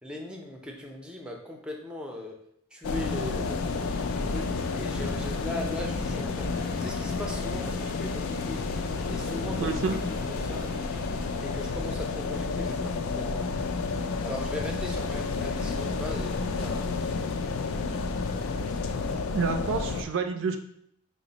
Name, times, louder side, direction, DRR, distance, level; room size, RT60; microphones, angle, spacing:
voice 1, 0.0-2.4 2.7-3.6 4.2-6.5 6.8-8.7 9.1-9.7 10.3-10.7 11.4-13.7 14.2-17.1, left 1 dB, 5° right, 1 dB, 0.4 m, -39 dB
sound 1, 2.8-20.0, left 4 dB, 90° left, 0.4 m, -31 dB
sound 2, 3.4-19.2, left 1 dB, 45° left, 0.6 m, -43 dB
voice 2, 9.6-10.0 19.1-20.6, right 5 dB, 65° right, 7 dB, 0.4 m, -29 dB
5.0 x 2.0 x 3.8 m, 0.70 s
head